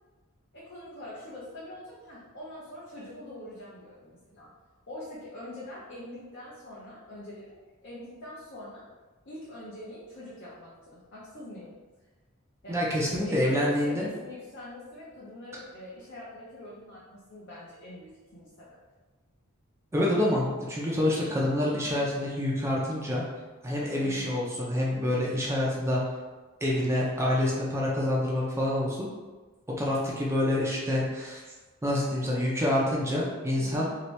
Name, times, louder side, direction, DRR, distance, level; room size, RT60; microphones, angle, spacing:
voice 1, 0.5-4.5 4.9-7.6 7.8-8.8 9.2-11.7 12.6-18.8 24.0-24.3 33.6-34.0, left 1 dB, 55° left, -8 dB, 0.7 m, -44 dB
voice 2, 12.7-14.1 19.9-23.2 23.6-26.0 26.6-29.1 29.8-31.4 31.8-33.9, left 1 dB, 15° right, -4 dB, 0.4 m, -27 dB
2.8 x 2.6 x 3.1 m, 1.3 s
head